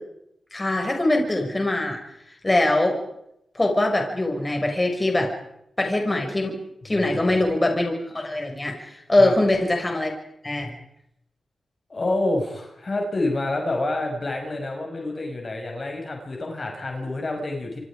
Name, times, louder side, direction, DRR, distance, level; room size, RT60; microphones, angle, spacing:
voice 1, 0.5-2.0 2.4-3.0 3.5-5.3 5.8-6.6 6.8-10.1 10.4-10.7, left 1 dB, 25° left, 2 dB, 6.1 m, -22 dB
voice 2, 6.9-7.3 9.2-9.3 11.9-17.8, left 2 dB, 45° left, 2 dB, 6.2 m, -28 dB
27.5 x 25.0 x 5.1 m, 0.79 s
supercardioid pair, 45°, 0 cm